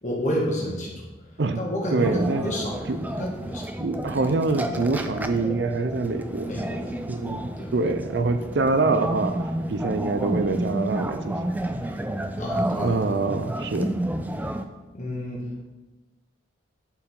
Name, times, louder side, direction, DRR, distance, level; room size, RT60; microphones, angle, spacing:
voice 1, 0.0-1.3 1.6-2.7 3.1-3.7 6.4-7.0 7.6-7.8 12.4-13.0 14.9-15.6, equal, 40° left, -3 dB, 1.7 m, -30 dB
voice 2, 1.9-2.4 2.9-3.0 3.8-6.5 7.1-7.4 7.7-9.3 9.7-11.4 12.8-13.9, right 3 dB, 65° right, 8 dB, 0.5 m, -25 dB
sound 1, 2.0-14.7, right 1 dB, 10° right, 0.3 m, -30 dB
11.0 x 4.5 x 3.8 m, 1.1 s
head